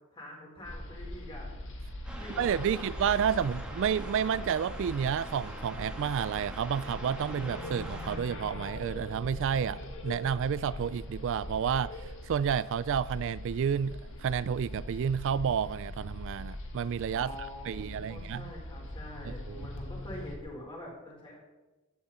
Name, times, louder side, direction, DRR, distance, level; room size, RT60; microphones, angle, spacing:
voice 1, 0.1-1.5 2.1-3.2 17.1-21.4, left 1 dB, 25° left, -3 dB, 4.5 m, -45 dB
sound 1, 0.6-20.4, left 1 dB, 60° left, 1.6 m, -42 dB
sound 2, 2.0-8.2, equal, 5° right, 1.9 m, -44 dB
voice 2, 2.4-17.3 17.7-18.5 19.3-19.7, right 7 dB, 60° right, 17 dB, 0.3 m, -30 dB
15.0 x 10.5 x 4.3 m, 1.1 s
head